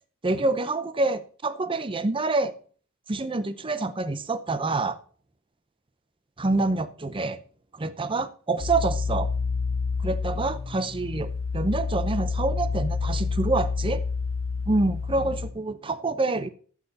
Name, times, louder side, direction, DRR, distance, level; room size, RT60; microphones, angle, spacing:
voice 1, 0.2-2.5 3.1-5.0 6.4-7.4 7.7-9.3 10.0-14.0 14.7-16.5, right 2 dB, 25° right, 13 dB, 0.6 m, -27 dB
sound 1, 8.6-15.5, left 4 dB, 70° left, 0.8 m, -28 dB
11.5 x 8.2 x 4.0 m, 0.43 s
head